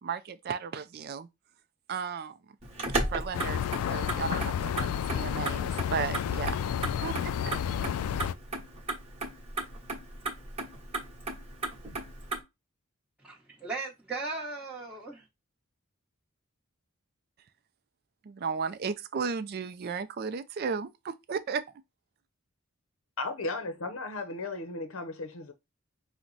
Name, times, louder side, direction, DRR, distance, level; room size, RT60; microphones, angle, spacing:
voice 1, 0.0-1.3 1.9-2.4 3.1-3.6 3.9-6.6 7.0-7.5 18.2-21.6, right 5 dB, 45° right, 0.4 m, -34 dB
Motor vehicle (road), 2.6-12.4, right 2 dB, 30° right, 1.1 m, -36 dB
sound 1, 3.3-8.3, left 8 dB, 85° left, 0.3 m, -31 dB
voice 2, 13.2-15.2, right 3 dB, 5° right, 1.0 m, -37 dB
voice 3, 23.2-25.5, left 3 dB, 65° left, 0.7 m, -35 dB
5.8 x 2.1 x 3.9 m
head